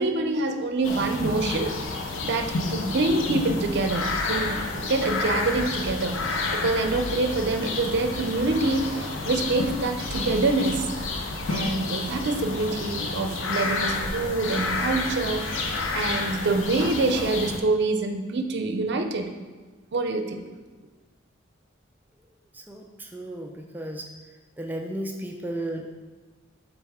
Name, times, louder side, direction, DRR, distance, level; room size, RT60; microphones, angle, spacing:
voice 1, 0.0-1.7 2.2-10.9 11.5-19.3 19.9-20.4, right 2 dB, 60° right, 6 dB, 0.6 m, -26 dB
sound 1, 0.8-17.6, left 3 dB, 80° left, 0.7 m, -30 dB
voice 2, 22.5-24.1 24.6-25.9, right 1 dB, 10° right, 3 dB, 0.3 m, -34 dB
7.3 x 4.1 x 3.6 m, 1.3 s
head